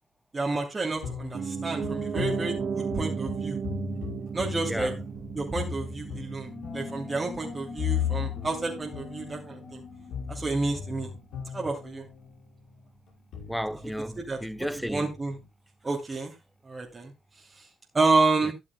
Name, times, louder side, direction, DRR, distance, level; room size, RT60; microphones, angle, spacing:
voice 1, 0.3-3.6 4.3-4.9 5.3-9.8 10.3-11.1 11.5-12.1 14.2-14.4 14.8-15.4 15.8-16.3 16.6-17.1 17.6-17.7 17.9-18.5, right 3 dB, 30° right, 2.8 m, -29 dB
sound 1, 0.9-12.4 13.1-15.5, left 8 dB, 65° left, 5.7 m, -37 dB
Piano, 1.3-11.3 11.6-11.7, right 6 dB, 45° right, 2.5 m, -36 dB
sound 2, 6.4-11.7, left 5 dB, 40° left, 6.5 m, -44 dB
voice 2, 13.5-15.1 18.4-18.5, equal, ahead, 0.8 m, -33 dB
13.5 x 11.0 x 2.3 m
hypercardioid pair, 45°, 0 cm